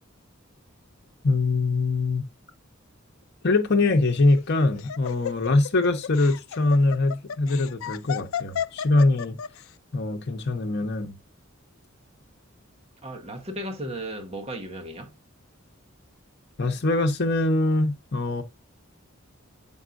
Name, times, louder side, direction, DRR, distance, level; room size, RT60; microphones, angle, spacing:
voice 1, 1.2-2.2 3.4-9.4 9.9-11.1 16.6-18.4, left 2 dB, 55° left, 0.8 m, -23 dB
Laughter, 4.2-9.6, left 8 dB, 85° left, 0.4 m, -33 dB
voice 2, 13.0-15.1, right 1 dB, 30° right, 1.1 m, -35 dB
7.2 x 5.4 x 2.5 m
head